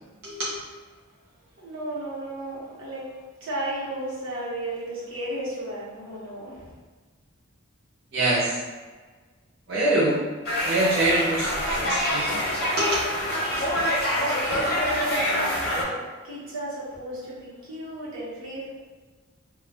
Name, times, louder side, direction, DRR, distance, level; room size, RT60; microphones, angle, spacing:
voice 1, 0.2-0.6 8.1-8.6 9.7-10.2 10.6-12.4 12.8-13.0, right 1 dB, 50° right, -10 dB, 0.8 m, -24 dB
voice 2, 1.6-6.8 14.2-15.9 16.2-18.7, right 1 dB, 80° right, -8 dB, 1.0 m, -34 dB
sound 1, 10.5-15.8, equal, 50° left, 0.6 m, -26 dB
2.3 x 2.2 x 3.4 m, 1.4 s
head